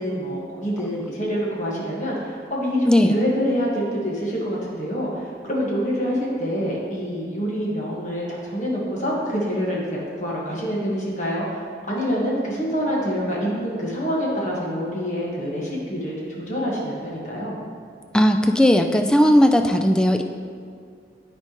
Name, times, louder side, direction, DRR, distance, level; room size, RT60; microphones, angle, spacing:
voice 1, 0.0-5.1 5.4-11.6 11.9-17.6, equal, 45° left, -4 dB, 1.5 m, -26 dB
voice 2, 18.1-20.2, equal, 5° left, 6 dB, 0.3 m, -17 dB
13.0 x 4.4 x 3.0 m, 2.3 s
head